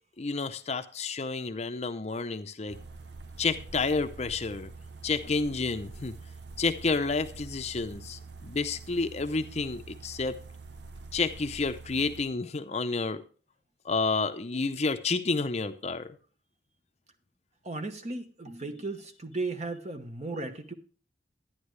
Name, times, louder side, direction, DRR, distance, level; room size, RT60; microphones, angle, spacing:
voice 1, 0.2-2.8 3.4-4.7 5.0-6.1 6.6-10.4 11.1-13.2 13.9-16.1, left 4 dB, 35° left, 9 dB, 0.6 m, -30 dB
sound 1, 2.7-12.2, right 3 dB, 70° right, 0.7 m, -46 dB
voice 2, 17.6-20.7, right 3 dB, 40° right, 7 dB, 1.1 m, -35 dB
11.5 x 10.5 x 3.2 m, 0.39 s
head